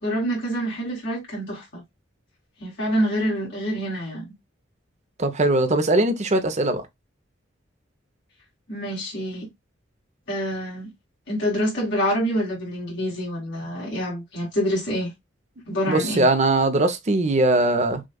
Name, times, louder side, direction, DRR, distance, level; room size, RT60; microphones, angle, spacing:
voice 1, 0.0-1.8 2.6-4.3 8.7-9.5 10.3-10.9 11.3-15.1 15.7-16.3, equal, 65° left, 2.3 m, -26 dB
voice 2, 5.2-6.8 15.9-18.0, right 2 dB, 35° right, 0.7 m, -20 dB
6.3 x 2.4 x 2.3 m
head